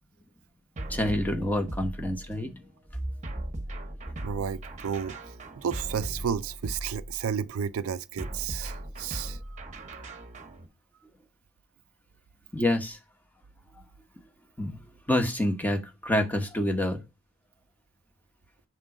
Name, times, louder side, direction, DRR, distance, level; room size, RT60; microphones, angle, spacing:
sound 1, 0.8-2.5 3.2-7.4 8.2-10.7, right 1 dB, 35° right, 1.0 m, -38 dB
voice 1, 0.9-2.6 9.1-9.2 12.5-13.0 14.6-14.8 15.1-17.0, left 1 dB, 10° left, 1.0 m, -27 dB
voice 2, 4.2-5.2 5.6-9.6 9.9-10.0, right 7 dB, 75° right, 0.4 m, -32 dB
6.1 x 3.8 x 4.8 m
head